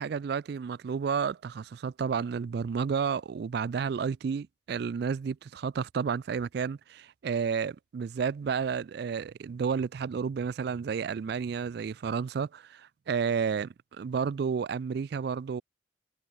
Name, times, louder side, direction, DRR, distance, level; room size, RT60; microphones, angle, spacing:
voice 1, 0.0-15.6, right 6 dB, 55° right, 0.3 m, -31 dB
head